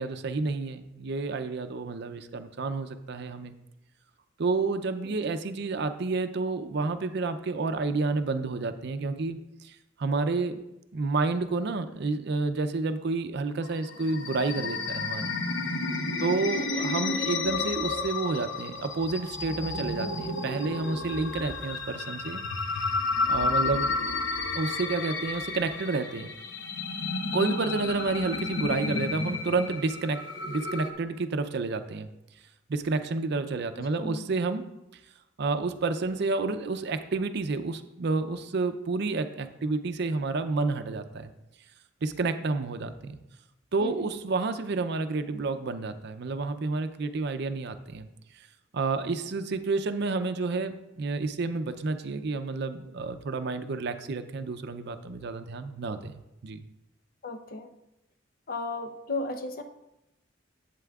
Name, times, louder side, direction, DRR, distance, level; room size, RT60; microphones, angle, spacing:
voice 1, 0.0-3.5 4.4-9.4 9.6-10.6 10.9-15.3 16.2-22.4 23.3-23.9 24.5-26.3 27.3-32.1 32.7-34.6 35.4-41.3 42.0-43.2 43.7-48.1 48.7-56.6, right 3 dB, 60° right, 10 dB, 0.5 m, -30 dB
sound 1, 13.6-30.9, left 3 dB, 75° left, 0.9 m, -31 dB
voice 2, 23.6-23.9 33.8-34.2 43.8-44.1 57.2-57.7 58.5-59.6, left 2 dB, 50° left, 6 dB, 0.7 m, -35 dB
11.0 x 8.3 x 2.3 m, 0.91 s
head